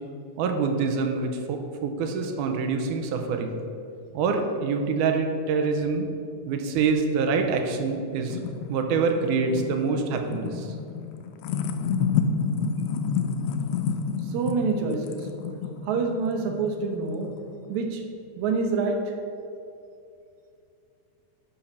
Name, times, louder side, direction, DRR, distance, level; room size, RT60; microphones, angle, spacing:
voice 1, 0.4-3.6 4.1-6.1 6.5-8.4 8.7-10.7, right 4 dB, 90° right, 5 dB, 2.2 m, -25 dB
sound 1, 7.7-17.8, left 6 dB, 85° left, 1.5 m, -30 dB
voice 2, 14.3-15.3 15.8-17.3 17.7-18.0 18.4-19.1, right 4 dB, 75° right, 3 dB, 2.1 m, -27 dB
10.0 x 3.9 x 5.9 m, 2.5 s
omnidirectional pair, 3.6 m